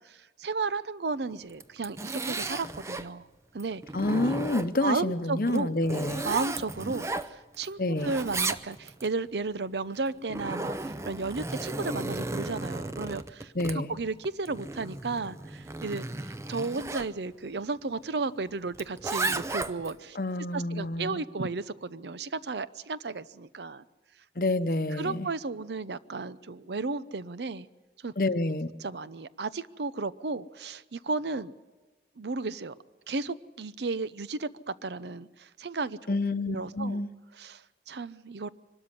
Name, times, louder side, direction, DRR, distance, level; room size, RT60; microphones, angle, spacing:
voice 1, 0.0-3.3 3.5-3.8 4.2-4.3 4.8-5.7 6.0-20.2 20.5-23.8 24.9-27.7 28.0-28.1 28.8-31.5 32.2-32.7 33.1-36.2 36.5-37.0 37.3-38.5, right 3 dB, 75° right, 16 dB, 0.7 m, -34 dB
Zipper (clothing), 1.5-3.1 3.6-4.9 5.5-7.7 7.9-9.1 10.0-17.1 18.7-20.0, right 2 dB, 15° right, 0.6 m, -34 dB
voice 2, 3.9-6.2 7.8-8.1 13.5-13.9 20.2-21.2 24.4-25.3 28.2-28.7 36.1-37.1, left 2 dB, 55° left, 12 dB, 0.8 m, -28 dB
24.0 x 13.0 x 9.8 m, 1.3 s
head